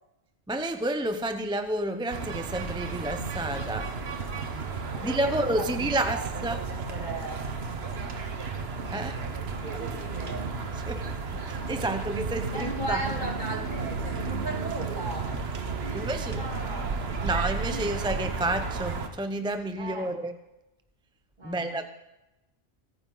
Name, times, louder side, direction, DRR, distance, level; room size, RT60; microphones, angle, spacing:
voice 1, 0.5-3.9 5.0-6.6 8.9-9.2 10.9-13.0 15.9-16.4 17.2-20.4 21.4-21.9, right 1 dB, 5° right, 8 dB, 0.5 m, -30 dB
sound 1, 2.1-19.1, right 4 dB, 65° right, 1.3 m, -33 dB
voice 2, 4.9-7.8 8.9-9.1 9.4-10.5 12.5-15.3 15.8-18.2 19.8-20.1 21.4-21.9, right 2 dB, 40° right, -1 dB, 2.7 m, -38 dB
25.0 x 9.5 x 3.9 m, 0.95 s
omnidirectional pair, 1.1 m